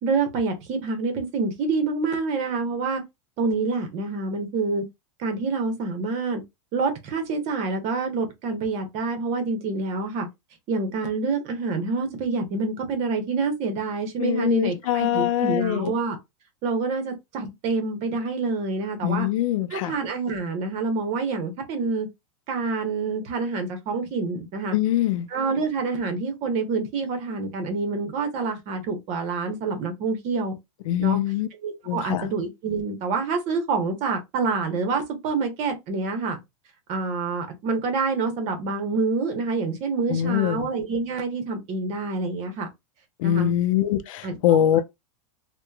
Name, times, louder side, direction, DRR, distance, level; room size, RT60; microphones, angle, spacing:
voice 1, 0.0-3.0 3.4-4.8 5.2-6.4 6.7-10.3 10.7-16.2 16.6-19.3 19.7-22.1 22.5-24.8 25.3-30.5 31.0-31.2 31.6-36.4 36.9-42.7 43.2-43.5 44.2-44.6, right 4 dB, 40° right, 0.9 m, -27 dB
voice 2, 14.2-15.9 19.0-19.9 24.7-25.3 30.9-31.5 31.9-32.3 40.1-40.7 43.2-44.8, left 11 dB, 80° left, 0.4 m, -23 dB
2.8 x 2.2 x 2.3 m
supercardioid pair, 140°, 17 cm